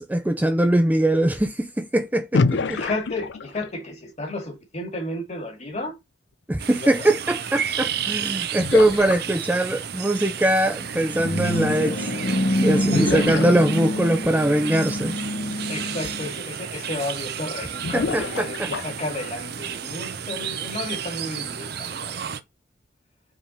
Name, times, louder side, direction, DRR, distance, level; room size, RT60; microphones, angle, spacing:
voice 1, 0.0-2.8 6.5-12.1 12.6-15.1 17.9-18.7, right 1 dB, 10° right, 0.5 m, -22 dB
Quick bubble rushes, 2.3-3.8 7.8-7.9 8.6-9.8 12.9-14.2 15.5-15.6 16.1-16.2 17.8-19.1, left 4 dB, 85° left, 0.5 m, -27 dB
voice 2, 2.7-5.9 6.8-7.1 12.9-13.5 15.7-22.2, left 2 dB, 40° left, 2.1 m, -32 dB
sound 1, 6.6-22.4, right 8 dB, 65° right, 0.6 m, -32 dB
sound 2, 10.7-16.3, left 1 dB, 60° left, 1.4 m, -26 dB
5.0 x 3.7 x 5.1 m
head